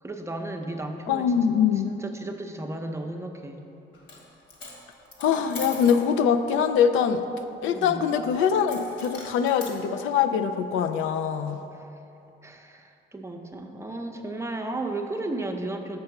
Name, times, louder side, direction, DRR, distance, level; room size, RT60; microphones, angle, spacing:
voice 1, 0.0-1.5 1.8-3.7 7.7-8.0 11.7-11.9 12.4-16.0, right 2 dB, 15° right, 3 dB, 0.7 m, -34 dB
voice 2, 1.1-1.9 5.2-7.2 7.6-11.6, left 7 dB, 85° left, 8 dB, 0.4 m, -23 dB
Coin (dropping), 3.9-4.2 4.5-6.0 8.7-9.8, left 3 dB, 65° left, 1.8 m, -41 dB
6.5 x 5.4 x 5.8 m, 2.9 s
cardioid pair, 90°, 20 cm